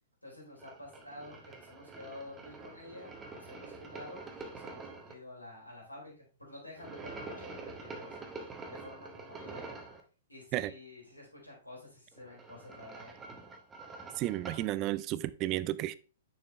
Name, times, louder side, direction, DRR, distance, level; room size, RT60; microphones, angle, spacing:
voice 1, 0.2-9.8 10.3-13.1, left 1 dB, 90° left, -3 dB, 3.7 m, -50 dB
sound 1, 0.6-5.1 6.8-10.0 12.1-14.7, right 3 dB, 15° right, 1.1 m, -46 dB
voice 2, 14.2-15.9, right 15 dB, 35° right, 16 dB, 0.4 m, -32 dB
6.8 x 5.7 x 3.3 m, 0.36 s
figure-of-eight pair, 110°, 0 cm